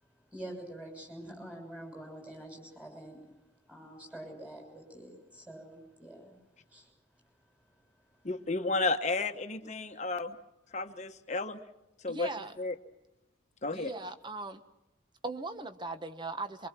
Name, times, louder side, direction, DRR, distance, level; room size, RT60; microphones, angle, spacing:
voice 1, 0.0-8.3, right 1 dB, 5° right, 2 dB, 6.6 m, -47 dB
voice 2, 8.2-10.3 10.7-11.6 12.0-12.3 12.6-12.7 13.6-13.9, left 3 dB, 35° left, 7 dB, 1.1 m, -32 dB
voice 3, 12.1-12.5 13.7-14.6 15.2-16.7, right 3 dB, 25° right, 9 dB, 1.1 m, -39 dB
24.0 x 23.5 x 6.0 m, 0.93 s
head